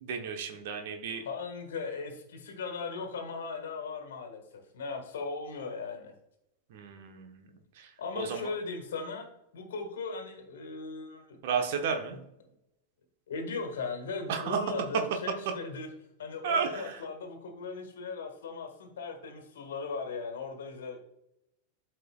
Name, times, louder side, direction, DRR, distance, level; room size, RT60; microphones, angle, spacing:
voice 1, 0.0-1.2 6.7-7.5 7.8-8.4 11.4-12.2 14.3-14.6 16.4-17.0, right 6 dB, 50° right, 4 dB, 0.9 m, -32 dB
voice 2, 1.2-4.4 4.7-6.1 8.0-9.2 9.5-11.4 12.1-12.2 13.3-15.9 16.2-21.0, left 4 dB, 60° left, 4 dB, 1.6 m, -38 dB
12.5 x 4.4 x 2.3 m, 0.82 s
figure-of-eight pair, 90°, 0 cm